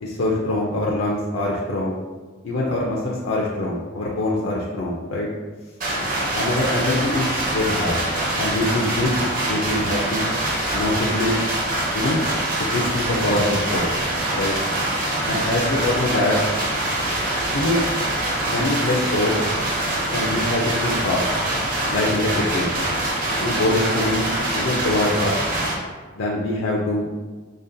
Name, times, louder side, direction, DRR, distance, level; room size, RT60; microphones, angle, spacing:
voice 1, 0.0-2.0 2.4-5.3 6.3-8.0 8.4-9.2 9.4-10.3 10.7-11.4 11.9-12.2 12.6-13.9 14.3-14.5 15.3-16.4 17.5-17.8 18.5-19.4 20.1-21.3 21.9-22.7 23.4-24.3 24.5-25.4 26.1-27.1, left 1 dB, 75° left, -3 dB, 0.5 m, -23 dB
sound 1, 5.8-25.7, right 1 dB, 45° right, 0.7 m, -24 dB
5.0 x 2.2 x 2.6 m, 1.4 s
head